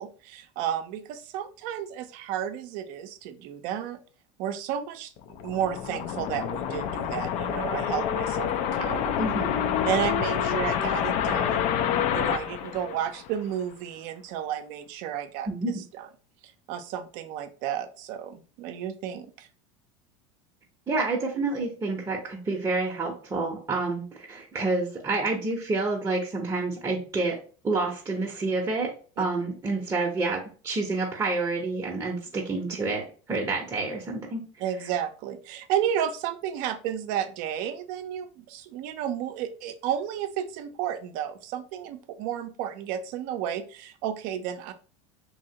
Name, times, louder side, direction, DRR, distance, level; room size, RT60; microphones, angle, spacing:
voice 1, 0.0-4.0 4.4-9.2 9.8-11.7 12.1-15.5 15.9-16.1 16.7-19.5 34.6-44.7, right 9 dB, 60° right, 9 dB, 0.5 m, -32 dB
sound 1, 5.2-13.5, left 9 dB, 50° left, 0.4 m, -28 dB
voice 2, 9.2-9.7 15.5-15.8 20.9-27.3 27.6-28.9 29.2-33.0 33.3-34.4, right 3 dB, 20° right, -1 dB, 0.7 m, -28 dB
2.8 x 2.7 x 2.7 m, 0.39 s
hypercardioid pair, 90°, 16 cm